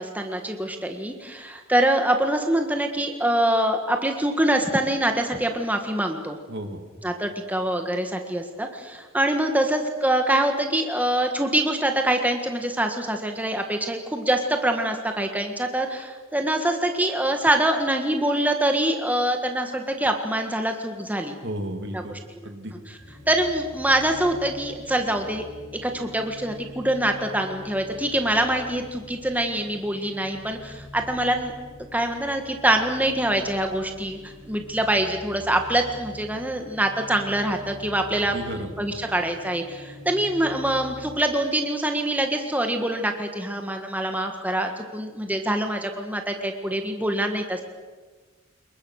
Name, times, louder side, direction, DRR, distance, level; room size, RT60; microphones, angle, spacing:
voice 1, 0.0-6.4 7.0-21.3 23.3-25.4 25.8-31.5 31.9-38.3 38.8-47.6, right 1 dB, 10° right, 4 dB, 1.7 m, -24 dB
voice 2, 6.5-6.8 21.4-22.1 22.4-22.7 38.2-38.7, right 1 dB, 60° right, 5 dB, 3.0 m, -33 dB
sound 1, 23.0-41.2, left 2 dB, 25° left, 6.9 m, -44 dB
28.0 x 23.0 x 6.5 m, 1.4 s
head